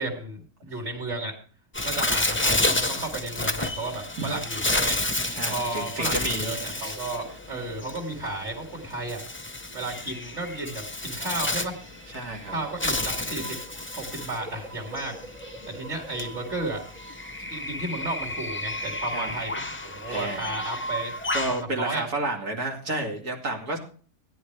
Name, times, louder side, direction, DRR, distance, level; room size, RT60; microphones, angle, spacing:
voice 1, 0.0-1.3 1.8-5.0 5.5-9.2 9.7-11.8 12.4-13.6 13.9-15.1 15.7-16.8 17.4-19.5 19.8-21.1 21.5-22.0, right 2 dB, 45° right, -2 dB, 2.9 m, -33 dB
Bird, 1.7-21.6, left 2 dB, 15° left, 0.5 m, -31 dB
voice 2, 5.3-6.5 6.8-7.0 12.1-12.6 19.1-19.3 20.1-20.6 21.3-23.8, right 2 dB, 85° right, 0 dB, 3.0 m, -31 dB
sound 1, 11.7-18.4, right 2 dB, 25° right, 1.9 m, -45 dB
17.0 x 10.5 x 3.3 m, 0.41 s
omnidirectional pair, 1.6 m